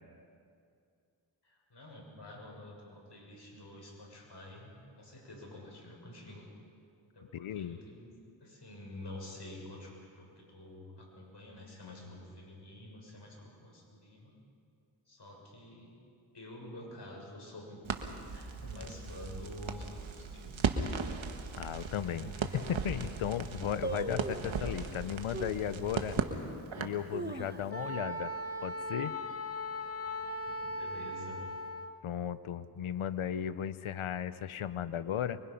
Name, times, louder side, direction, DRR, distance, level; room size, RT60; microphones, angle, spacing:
voice 1, 1.4-6.5 7.1-8.1 8.4-14.4 15.1-15.9 16.3-17.8 18.3-21.0 29.8-31.4, left 1 dB, 60° left, 0 dB, 7.0 m, -49 dB
voice 2, 7.3-7.8 21.6-26.2 26.8-28.3 28.6-29.1 32.0-35.4, left 9 dB, 85° left, 15 dB, 0.8 m, -35 dB
Crackle, 17.8-27.1, right 5 dB, 75° right, 1.6 m, -37 dB
sound 1, 21.8-21.9 22.5-22.6 22.8-23.2 23.8-24.6 25.3-25.7 26.2-26.3 26.9-28.0 28.3-28.4 28.7-29.1 29.5-29.9 30.5-31.3 31.5-31.6, right 3 dB, 20° right, 1.2 m, -40 dB
Wind instrument woodwind instrument, 27.7-32.0, left 1 dB, 30° left, 1.1 m, -38 dB
25.0 x 23.5 x 5.7 m, 2.4 s
cardioid pair, 45°, 48 cm